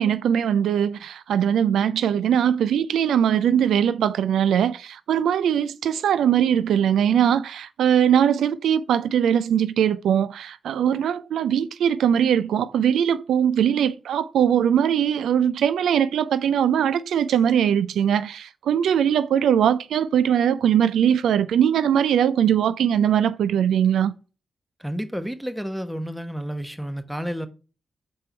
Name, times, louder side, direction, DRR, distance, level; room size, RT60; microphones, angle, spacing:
voice 1, 0.0-24.1, right 9 dB, 85° right, 0.3 m, -21 dB
voice 2, 24.8-27.5, equal, 5° right, 1.1 m, -30 dB
5.3 x 4.4 x 4.3 m
supercardioid pair, 45°, 0 cm